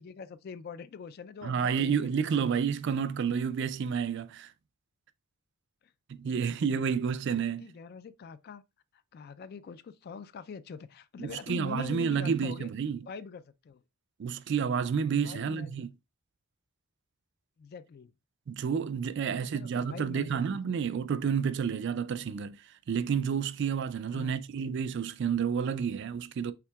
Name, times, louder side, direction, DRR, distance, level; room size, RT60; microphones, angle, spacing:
voice 1, 0.0-2.1 5.8-5.9 6.2-7.0 7.4-8.6 9.1-12.7 13.0-13.8 15.2-15.7 17.6-18.1 19.2-20.8 24.1-24.4, left 5 dB, 45° left, 0.3 m, -44 dB
voice 2, 1.4-4.5 6.1-7.6 11.2-13.0 14.2-15.9 18.5-22.6 22.9-26.5, right 6 dB, 55° right, 0.3 m, -30 dB
5.8 x 3.7 x 2.3 m
head